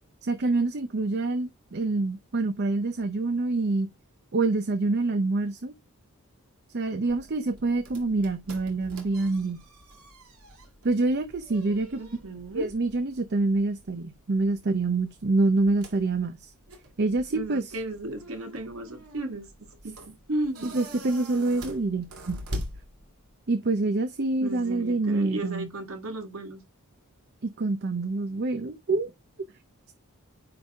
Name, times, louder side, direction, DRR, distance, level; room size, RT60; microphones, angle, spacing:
voice 1, 0.2-3.9 4.3-5.7 6.7-9.6 10.8-12.0 12.5-16.5 17.0-17.6 20.6-22.4 23.5-25.7 27.4-29.1, right 3 dB, 50° right, 0.6 m, -26 dB
sound 1, 7.1-23.5, equal, 85° right, 2.3 m, -44 dB
voice 2, 8.8-9.4 12.0-12.7 17.1-20.8 24.4-26.6, right 1 dB, 65° right, 1.9 m, -35 dB
9.6 x 3.4 x 3.5 m
head